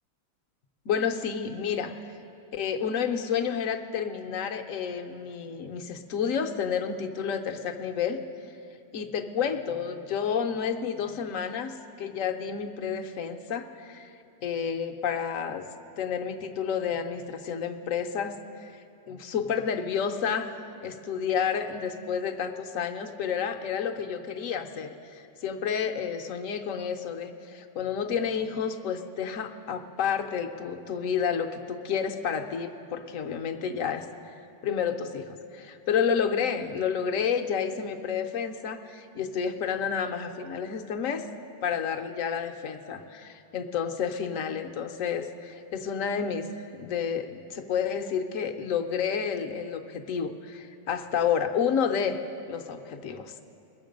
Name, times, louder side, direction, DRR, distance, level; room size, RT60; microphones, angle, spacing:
voice 1, 0.9-2.0 2.5-8.2 8.9-14.1 14.4-15.6 16.0-18.7 19.1-20.6 20.8-34.1 34.6-41.2 41.6-46.5 46.8-52.2 52.5-53.4, left 7 dB, 65° left, 6 dB, 1.0 m, -30 dB
21.5 x 7.3 x 5.2 m, 2.8 s
omnidirectional pair, 1.6 m